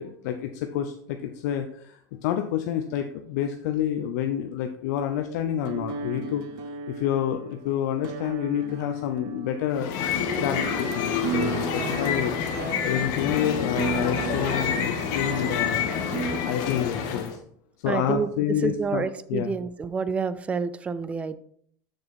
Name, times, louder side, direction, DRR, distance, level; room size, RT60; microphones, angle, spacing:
voice 1, 0.0-6.4 6.9-9.9 10.4-12.4 12.8-15.9 16.4-17.4 17.8-19.5, left 10 dB, 70° left, 6 dB, 0.7 m, -28 dB
sound 1, 5.6-16.4, right 6 dB, 50° right, 0.9 m, -35 dB
sound 2, 9.7-17.3, left 7 dB, 50° left, 1.3 m, -28 dB
voice 2, 17.9-18.3 18.6-21.4, right 5 dB, 15° right, 15 dB, 0.3 m, -28 dB
7.1 x 6.4 x 4.1 m, 0.65 s
supercardioid pair, 160°, 10 cm